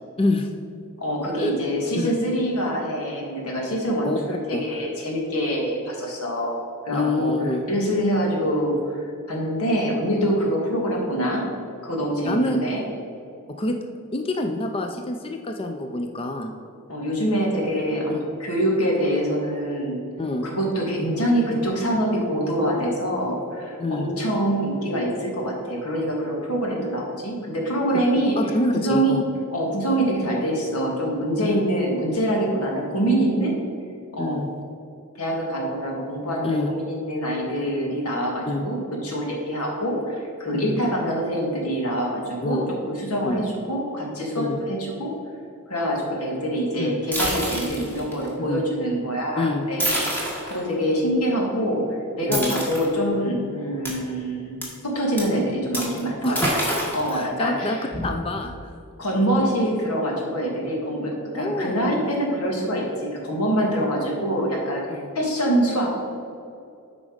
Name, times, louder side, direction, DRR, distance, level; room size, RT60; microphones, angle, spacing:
voice 1, 0.2-0.5 1.4-1.5 2.0-2.2 4.0-4.2 4.5-4.6 6.9-7.6 12.3-12.6 13.5-13.8 14.1-16.5 18.1-18.3 20.2-20.5 23.8-24.1 28.4-29.2 31.4-31.6 34.2-34.5 36.4-36.7 38.5-38.7 40.5-40.8 42.4-42.7 43.2-43.5 44.4-44.6 46.8-47.0 48.5-48.6 49.4-49.7 52.3-52.5 56.2-56.5 57.1-57.8 58.0-58.8 61.3-62.0 63.6-63.8 64.9-65.1, left 2 dB, 25° left, 4 dB, 0.4 m, -26 dB
voice 2, 1.0-7.3 7.7-8.8 9.3-11.4 11.8-12.8 16.9-20.0 20.4-28.4 28.7-29.2 29.5-33.5 34.1-34.4 35.2-45.1 45.7-49.8 50.4-51.8 52.2-56.6 56.9-57.9 59.0-66.0, equal, 90° left, -1 dB, 1.9 m, -25 dB
sound 1, 47.1-48.3 49.8-50.6 52.3-52.9 53.8-53.9 54.6-54.7 55.2-55.3 55.7-56.0 56.2-57.1 57.9-58.5, equal, 10° left, 1.6 m, -26 dB
8.5 x 5.2 x 5.0 m, 2.5 s
head